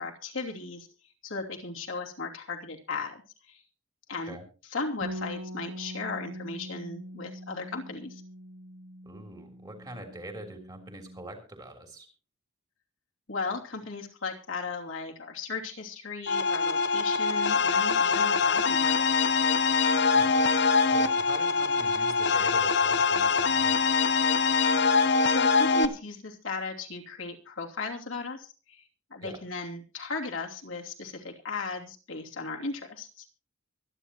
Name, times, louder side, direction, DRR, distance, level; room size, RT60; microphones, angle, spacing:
voice 1, 0.0-3.6 4.1-4.4 4.6-8.2 13.3-19.3 25.0-33.4, left 3 dB, 70° left, -1 dB, 3.0 m, -36 dB
Bass guitar, 5.0-11.3, equal, 85° right, 1.0 m, -42 dB
voice 2, 9.0-12.1 20.1-20.4 20.9-23.9 29.2-29.4, right 1 dB, 20° right, 4 dB, 3.3 m, -43 dB
sound 1, 16.3-25.9, left 4 dB, 50° left, 0.9 m, -24 dB
24.5 x 10.0 x 3.0 m, 0.35 s
head